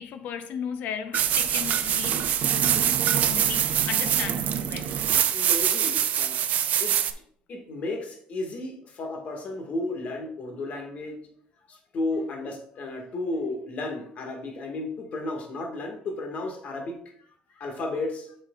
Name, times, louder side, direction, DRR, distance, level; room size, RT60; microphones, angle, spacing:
voice 1, 0.0-3.0 3.3-5.0, left 8 dB, 75° left, 0.8 m, -36 dB
sound 1, 1.1-7.1, right 10 dB, 60° right, 0.5 m, -24 dB
voice 2, 5.3-6.4 6.8-6.9 7.5-11.2 11.7-17.0 17.6-18.3, left 2 dB, 55° left, 1.8 m, -33 dB
8.1 x 6.3 x 2.4 m
cardioid pair, 100°, 3 cm